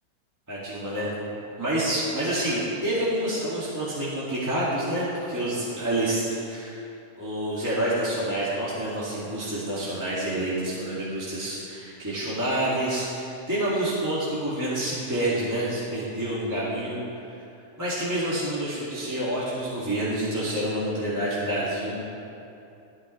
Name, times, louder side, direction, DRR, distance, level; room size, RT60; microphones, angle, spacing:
voice 1, 0.5-1.1 1.6-6.8 7.2-17.0 17.8-22.0, right 1 dB, 5° right, -9 dB, 1.7 m, -28 dB
14.0 x 13.5 x 3.3 m, 2.7 s
omnidirectional pair, 3.7 m